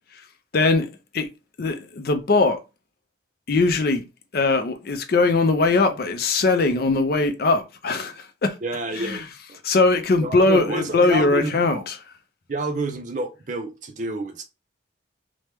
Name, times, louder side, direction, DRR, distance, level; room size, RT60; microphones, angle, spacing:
voice 1, 0.5-0.9 1.1-1.3 1.6-2.6 3.5-4.0 4.3-8.6 9.0-9.3 9.6-12.0, left 3 dB, 50° left, 0.4 m, -20 dB
voice 2, 8.6-9.2 9.5-9.6 10.2-11.8 12.5-14.4, right 2 dB, 40° right, 0.5 m, -29 dB
3.0 x 2.2 x 3.3 m
head